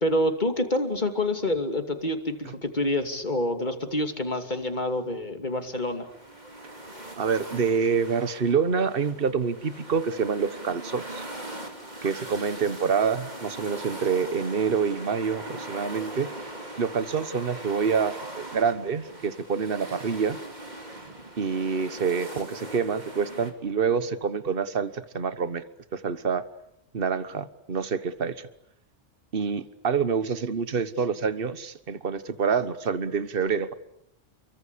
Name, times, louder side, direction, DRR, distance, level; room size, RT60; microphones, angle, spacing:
voice 1, 0.0-6.1, left 1 dB, 40° left, 6 dB, 2.9 m, -27 dB
sound 1, 5.5-23.5, right 1 dB, 40° right, 3.7 m, -40 dB
voice 2, 7.2-11.2 12.0-16.3 16.8-20.4 21.4-25.6 25.9-26.4 26.9-28.5 29.3-33.7, right 6 dB, 55° right, 14 dB, 1.5 m, -27 dB
30.0 x 23.5 x 8.5 m, 0.77 s
omnidirectional pair, 1.2 m